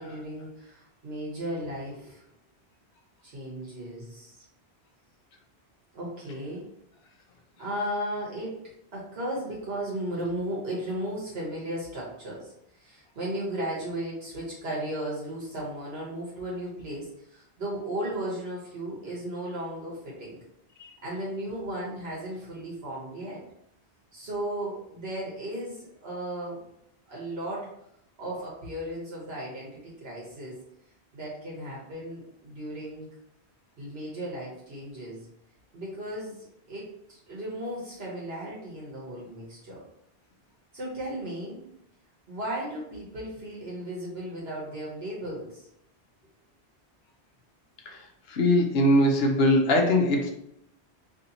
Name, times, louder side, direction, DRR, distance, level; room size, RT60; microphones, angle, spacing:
voice 1, 0.0-2.2 3.2-4.4 5.9-6.7 7.6-8.6 8.9-20.4 21.0-23.4 24.1-26.6 27.1-27.7 28.2-30.6 31.1-33.1 33.8-35.3 35.7-39.8 40.7-41.6 42.3-45.7, right 1 dB, 65° right, -5 dB, 1.2 m, -35 dB
voice 2, 47.9-50.3, left 1 dB, 70° left, 2 dB, 0.9 m, -22 dB
3.1 x 2.8 x 4.0 m, 0.75 s
omnidirectional pair, 1.1 m